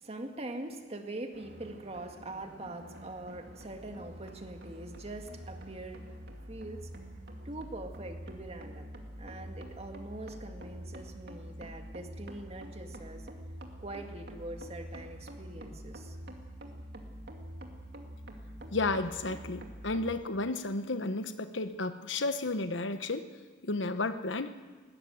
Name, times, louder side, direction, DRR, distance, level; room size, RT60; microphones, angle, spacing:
voice 1, 0.0-6.0 6.5-6.9 7.5-8.9 9.2-13.2 13.8-16.2, right 2 dB, 35° right, 5 dB, 1.9 m, -43 dB
sound 1, 1.3-20.1, equal, 60° right, 2.4 m, -46 dB
voice 2, 18.7-23.3 23.6-24.5, left 2 dB, 80° left, 10 dB, 1.1 m, -32 dB
20.0 x 17.0 x 8.0 m, 1.4 s
head